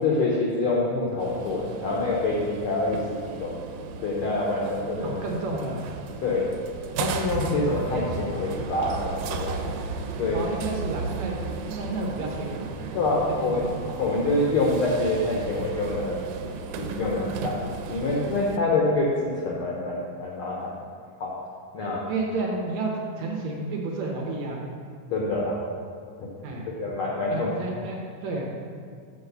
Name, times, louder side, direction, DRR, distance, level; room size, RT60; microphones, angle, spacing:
voice 1, 0.0-3.6 4.0-5.2 6.2-6.5 7.0-9.8 10.2-10.5 12.9-13.6 13.9-16.2 16.8-17.6 17.9-20.7 21.2-21.3 21.7-22.0 25.1-25.6 26.2-26.3 26.7-27.5, left 2 dB, 90° left, -3 dB, 1.2 m, -26 dB
sound 1, 1.2-18.6, right 4 dB, 90° right, 2.2 m, -35 dB
voice 2, 5.0-5.8 10.3-13.0 13.3-13.7 22.1-24.6 26.4-26.6 27.3-28.4, right 3 dB, 70° right, -1 dB, 2.0 m, -31 dB
6.6 x 4.7 x 6.7 m, 2.1 s
omnidirectional pair, 3.7 m